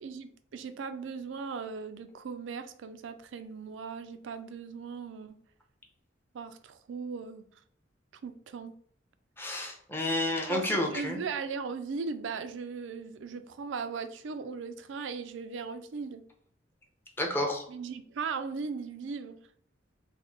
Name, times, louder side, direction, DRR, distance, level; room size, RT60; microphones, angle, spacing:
voice 1, 0.0-5.4 6.3-7.4 8.2-8.7 10.5-16.2 17.7-19.4, right 5 dB, 75° right, 10 dB, 0.4 m, -38 dB
voice 2, 9.4-11.2 17.2-17.6, left 1 dB, 10° left, 1 dB, 0.7 m, -30 dB
3.5 x 2.1 x 3.8 m, 0.62 s
head